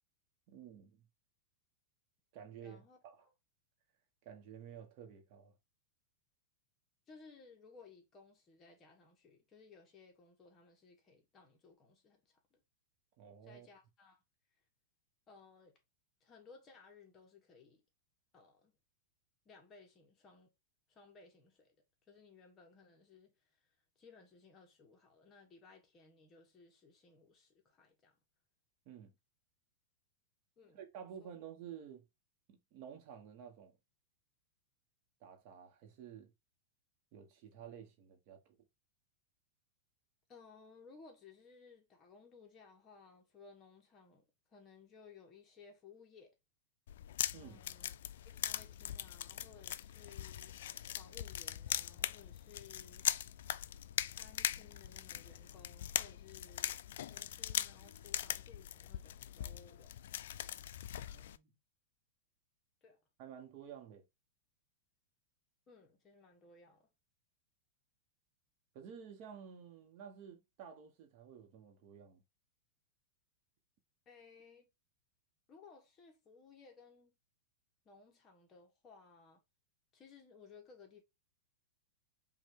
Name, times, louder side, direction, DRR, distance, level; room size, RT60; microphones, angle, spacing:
voice 1, 0.5-1.1 2.3-3.2 4.2-5.5 13.2-13.7 28.8-29.1 30.7-32.1 32.5-33.8 35.2-36.3 37.1-38.4 47.3-47.6 60.9-61.6 63.2-64.0 68.7-72.2, right 8 dB, 45° right, 1.3 m, -52 dB
voice 2, 2.6-3.3 7.1-12.6 13.4-14.2 15.3-15.8 16.2-17.8 18.3-18.7 19.4-20.5 20.9-21.8 22.1-23.7 23.9-28.2 30.6-30.8 31.2-31.3 40.3-46.4 47.4-47.9 48.2-50.6 51.0-53.1 54.0-59.9 62.8-63.0 65.7-66.9 74.0-74.7 75.5-77.2 77.8-79.4 79.9-81.0, left 5 dB, 25° left, 1.5 m, -60 dB
sound 1, 46.9-61.4, left 11 dB, 75° left, 0.3 m, -41 dB
5.4 x 2.6 x 3.7 m
supercardioid pair, 140°, 0 cm